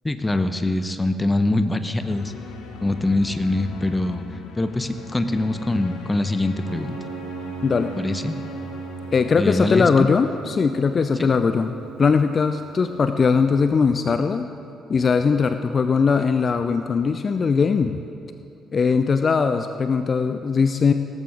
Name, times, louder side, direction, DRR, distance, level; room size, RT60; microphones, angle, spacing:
voice 1, 0.0-2.3 2.8-4.2 4.6-7.0 8.0-8.3 9.4-10.1 11.2-11.3, left 2 dB, 20° left, 10 dB, 0.9 m, -23 dB
sound 1, 2.0-10.8, left 4 dB, 70° left, 1.2 m, -39 dB
Piano, 6.6-13.1, right 8 dB, 75° right, 0.8 m, -38 dB
voice 2, 7.6-7.9 9.1-14.5 14.9-17.9 18.7-20.9, left 5 dB, 40° left, 9 dB, 0.5 m, -20 dB
17.5 x 14.0 x 3.7 m, 2.7 s
figure-of-eight pair, 45°, 0 cm